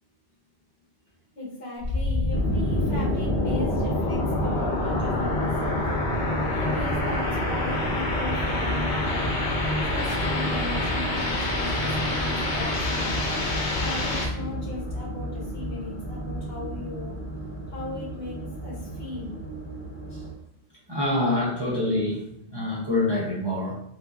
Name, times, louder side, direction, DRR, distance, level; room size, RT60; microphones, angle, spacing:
voice 1, 1.3-6.2 6.5-9.3 9.8-13.2 13.8-17.2 17.7-19.4, left 2 dB, 60° left, -6 dB, 1.6 m, -37 dB
sound 1, 1.8-14.3, left 2 dB, 80° left, 1.0 m, -27 dB
sound 2, 2.3-20.3, right 1 dB, 20° left, 0.4 m, -32 dB
voice 2, 20.9-22.2 22.5-23.7, left 2 dB, 25° right, -7 dB, 0.7 m, -25 dB
3.6 x 2.7 x 2.4 m, 0.75 s
omnidirectional pair, 1.1 m